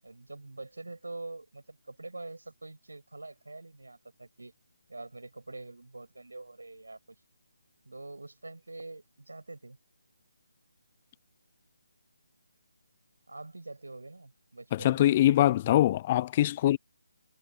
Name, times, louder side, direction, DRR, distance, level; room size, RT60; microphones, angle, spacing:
voice 1, 0.0-4.5 4.9-7.0 7.8-9.8 13.3-15.5, right 2 dB, 80° right, 7.9 m, -45 dB
voice 2, 14.7-16.8, left 13 dB, 25° left, 0.6 m, -23 dB
figure-of-eight pair, 155°, 0 cm